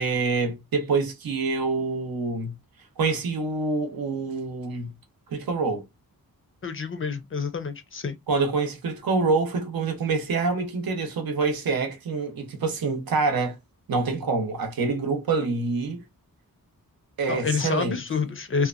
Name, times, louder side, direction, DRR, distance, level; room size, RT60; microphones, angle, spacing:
voice 1, 0.0-2.5 3.0-4.9 5.3-5.8 8.3-13.6 13.9-16.0 17.2-18.0, right 4 dB, 80° right, 0.7 m, -26 dB
voice 2, 6.6-8.2 17.3-18.7, left 5 dB, 35° left, 0.4 m, -28 dB
2.8 x 2.2 x 2.4 m
wide cardioid pair, 145°, 35 cm